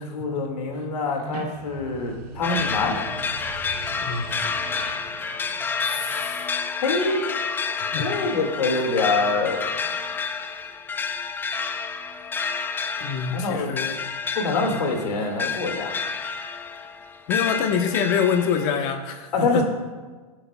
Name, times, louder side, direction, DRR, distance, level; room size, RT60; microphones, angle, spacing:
voice 1, 0.0-3.0 5.8-6.3 6.8-7.2 8.0-9.7 13.3-13.7 14.3-16.0 19.3-19.6, left 3 dB, 85° left, 2 dB, 2.3 m, -25 dB
sound 1, 1.1-6.4, right 5 dB, 70° right, 1.1 m, -41 dB
sound 2, 2.4-18.7, left 5 dB, 10° left, 0.4 m, -29 dB
voice 2, 4.0-4.4 7.8-8.1 8.7-8.8 13.0-14.0 14.7-14.8 17.3-19.6, left 7 dB, 45° left, 5 dB, 1.3 m, -26 dB
17.0 x 7.8 x 2.4 m, 1.3 s
hypercardioid pair, 130°, 20 cm